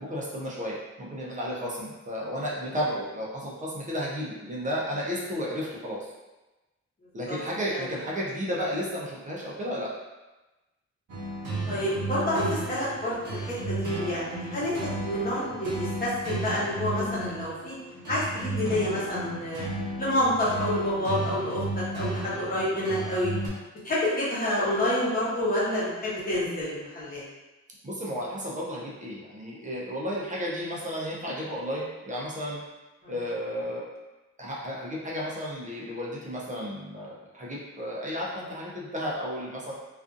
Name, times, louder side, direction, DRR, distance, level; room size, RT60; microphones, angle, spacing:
voice 1, 0.0-6.1 7.1-9.9 27.8-32.6 33.1-33.8 34.4-39.7, equal, 25° right, -5 dB, 0.5 m, -33 dB
sound 1, 11.1-23.5, right 2 dB, 85° right, 0.8 m, -34 dB
voice 2, 11.7-14.8 15.0-17.7 18.1-19.7 20.0-23.3 23.8-27.2 33.0-33.1, left 1 dB, 30° left, -8 dB, 0.9 m, -28 dB
2.5 x 2.4 x 2.4 m, 1.1 s
wide cardioid pair, 155°, 30 cm